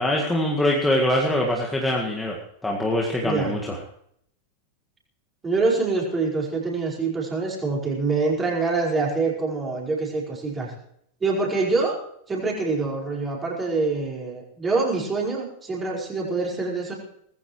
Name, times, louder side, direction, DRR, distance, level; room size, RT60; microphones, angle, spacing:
voice 1, 0.0-3.8, left 1 dB, 5° left, -1 dB, 1.9 m, -23 dB
voice 2, 3.2-3.5 5.4-10.7 11.2-12.0 12.3-16.9, right 3 dB, 15° right, -3 dB, 5.1 m, -25 dB
20.0 x 15.0 x 3.2 m, 0.71 s
figure-of-eight pair, 90°, 0 cm